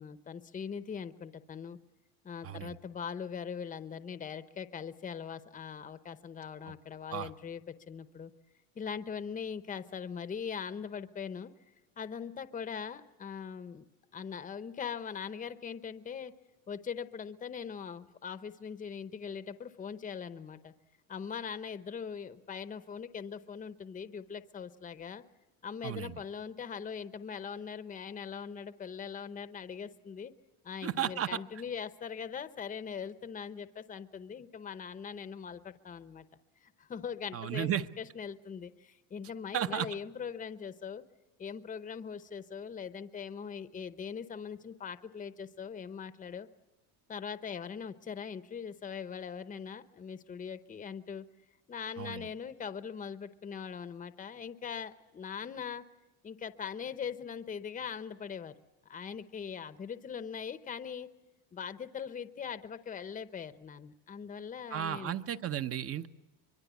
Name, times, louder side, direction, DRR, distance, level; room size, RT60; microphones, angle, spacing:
voice 1, 0.0-1.8 2.2-8.3 8.8-11.5 12.0-13.8 14.1-16.3 16.7-20.7 21.1-25.2 25.6-30.3 30.6-36.2 36.6-37.7 38.0-41.0 41.4-46.5 47.1-51.2 51.7-55.8 56.2-58.6 58.9-61.1 61.5-65.1, left 7 dB, 20° left, 11 dB, 0.8 m, -41 dB
voice 2, 2.4-2.8 6.7-6.8 7.1-7.3 25.8-26.1 30.8-31.4 37.3-37.9 39.5-39.9 52.0-52.3 64.7-66.1, right 10 dB, 35° right, 11 dB, 0.8 m, -34 dB
24.5 x 23.0 x 8.3 m, 1.1 s
cardioid pair, 135°, 42 cm